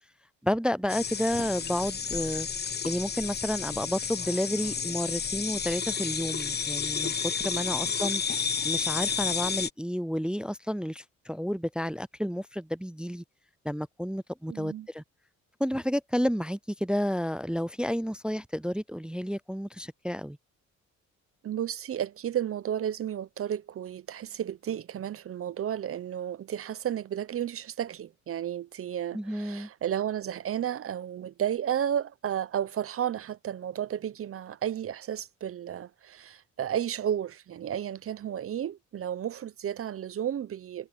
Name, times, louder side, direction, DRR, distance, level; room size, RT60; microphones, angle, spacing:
voice 1, 0.4-2.5 2.8-8.2 8.6-13.2 13.6-15.0 15.6-20.4 29.1-29.7, equal, 5° right, 0.4 m, -31 dB
sound 1, 0.9-9.7, left 6 dB, 35° left, 1.1 m, -31 dB
voice 2, 14.5-14.9 21.4-40.9, right 10 dB, 50° right, 0.8 m, -33 dB
cardioid pair, 90°, 30 cm